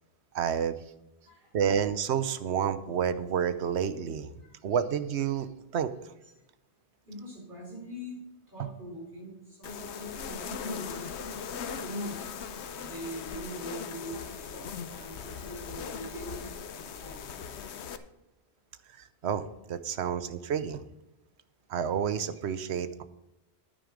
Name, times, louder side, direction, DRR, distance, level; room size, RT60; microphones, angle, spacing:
voice 1, 0.3-0.8 1.5-4.3 4.6-5.5 5.7-5.9 8.6-8.7 19.2-20.8 21.7-23.0, right 8 dB, 85° right, 12 dB, 1.0 m, -29 dB
voice 2, 7.0-8.2 8.5-17.3 19.8-19.9, equal, 50° right, -2 dB, 4.6 m, -43 dB
sound 1, 9.6-18.0, left 6 dB, 85° left, 1.0 m, -39 dB
10.5 x 9.3 x 5.1 m, 0.91 s
omnidirectional pair, 1.1 m